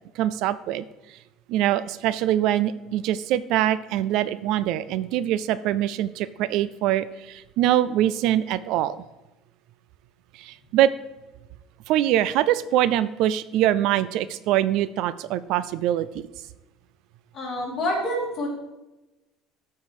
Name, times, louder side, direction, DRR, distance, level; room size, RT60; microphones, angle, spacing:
voice 1, 0.2-1.2 1.5-9.0 10.3-10.9 11.9-16.1, right 12 dB, 60° right, 16 dB, 0.3 m, -23 dB
voice 2, 17.3-18.5, left 1 dB, 30° left, -3 dB, 3.0 m, -27 dB
13.5 x 4.6 x 4.8 m, 1.0 s
cardioid pair, 160°, 0 cm